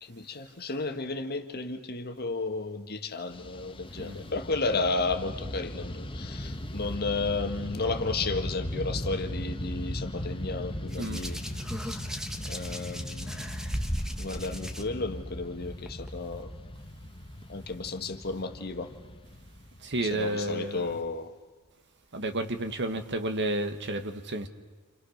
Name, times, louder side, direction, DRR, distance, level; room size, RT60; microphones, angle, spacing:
voice 1, 0.0-11.4 11.8-12.0 12.5-13.6 14.2-16.5 17.5-18.9 20.0-21.3 22.8-23.0, left 3 dB, 45° left, 1.7 m, -33 dB
Fixed-wing aircraft airplane, 3.3-20.7, left 1 dB, 25° left, 1.2 m, -38 dB
Hands, 10.9-14.8 15.9-16.1, equal, ahead, 1.4 m, -36 dB
voice 2, 19.8-20.9 22.1-24.5, right 1 dB, 55° right, 1.7 m, -31 dB
29.0 x 29.0 x 6.6 m
head